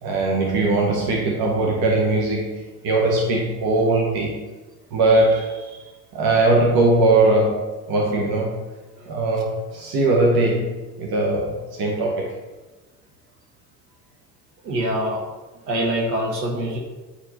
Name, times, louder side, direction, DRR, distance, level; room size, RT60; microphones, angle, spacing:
voice 1, 0.0-4.4 4.9-5.8 6.1-8.6 9.1-12.3, right 2 dB, 45° right, -1 dB, 1.6 m, -20 dB
voice 2, 14.6-15.2 15.7-16.8, right 1 dB, 75° right, 0 dB, 1.9 m, -24 dB
9.4 x 4.6 x 4.3 m, 1.2 s
figure-of-eight pair, 65°, 49 cm